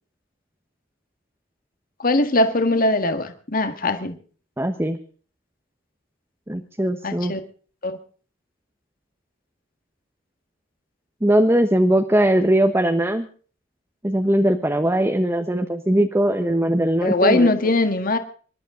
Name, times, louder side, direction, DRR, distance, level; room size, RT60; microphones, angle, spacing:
voice 1, 2.0-4.2 7.0-7.4 7.8-8.0 17.0-18.2, left 2 dB, 45° left, 8 dB, 1.8 m, -20 dB
voice 2, 4.6-5.0 6.5-7.3 11.2-13.3 14.0-17.5, right 1 dB, 15° right, 6 dB, 1.1 m, -20 dB
26.5 x 12.0 x 3.9 m, 0.42 s
head